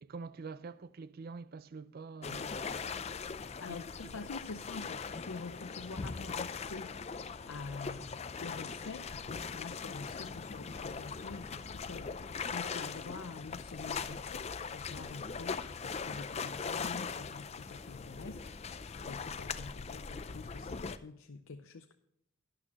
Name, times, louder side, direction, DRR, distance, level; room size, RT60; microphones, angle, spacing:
voice 1, 0.0-2.9 3.7-3.8, right 4 dB, 45° right, 0.4 m, -46 dB
sound 1, 2.2-21.0, left 5 dB, 30° left, 0.4 m, -40 dB
voice 2, 3.6-6.9 7.5-18.7 19.1-21.9, left 4 dB, 70° left, 0.6 m, -46 dB
12.0 x 10.5 x 2.9 m
head